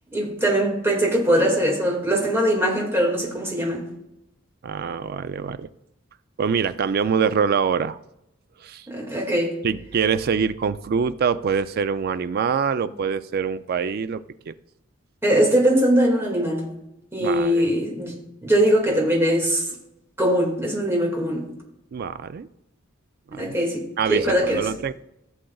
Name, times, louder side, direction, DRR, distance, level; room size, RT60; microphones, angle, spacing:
voice 1, 0.1-3.8 8.9-9.5 15.2-16.7 17.1-19.7 20.2-21.4 23.3-23.8 24.1-24.7, equal, 10° right, -1 dB, 2.0 m, -21 dB
voice 2, 4.6-5.7 6.4-8.0 8.6-8.9 9.6-14.5 17.2-17.7 21.9-22.5 23.3-23.5 24.0-24.9, right 6 dB, 45° right, 13 dB, 0.3 m, -24 dB
15.0 x 6.4 x 2.3 m, 0.84 s
head